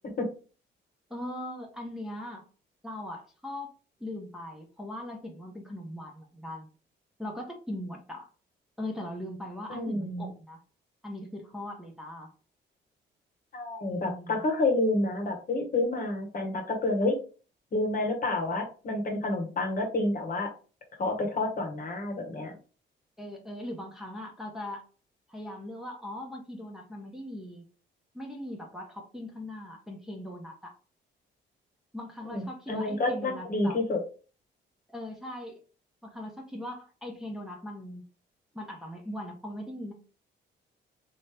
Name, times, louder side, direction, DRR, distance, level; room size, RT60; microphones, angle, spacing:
voice 1, 1.1-2.4 2.8-3.7 4.0-6.7 7.2-8.3 8.8-10.6 11.0-12.3 13.9-14.4 23.2-24.8 25.3-27.6 28.1-30.7 31.9-33.8 34.9-35.6 36.0-38.1 38.5-39.9, left 1 dB, ahead, -1 dB, 1.0 m, -40 dB
voice 2, 9.7-10.3 13.5-17.2 17.7-20.5 21.0-22.5 32.3-34.0, left 2 dB, 45° left, 3 dB, 1.1 m, -29 dB
3.1 x 2.7 x 3.4 m, 0.37 s
cardioid pair, 90°, 20 cm